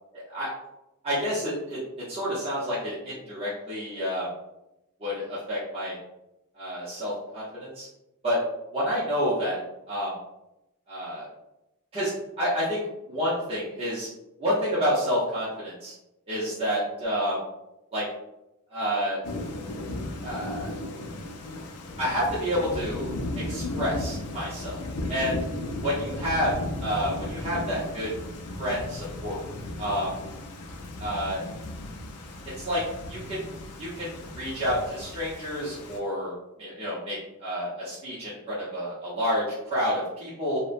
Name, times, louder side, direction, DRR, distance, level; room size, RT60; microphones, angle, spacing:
voice 1, 0.1-0.5 1.0-1.8 2.1-4.3 5.0-6.0 6.5-7.9 8.2-8.4 8.7-9.6 9.9-10.1 10.9-11.3 11.9-12.1 12.4-14.1 14.4-15.9 16.3-17.4 17.9-18.0 18.7-19.2 20.2-20.7 22.0-23.1 23.5-24.8 25.1-25.4 25.8-26.5 26.8-28.1 28.6-29.4 29.8-30.1 31.0-31.4 32.6-32.8 33.1-40.6, equal, 25° right, -9 dB, 0.6 m, -29 dB
Thunder / Rain, 19.2-36.0, left 1 dB, 90° left, 0.4 m, -36 dB
2.7 x 2.1 x 2.4 m, 0.90 s
head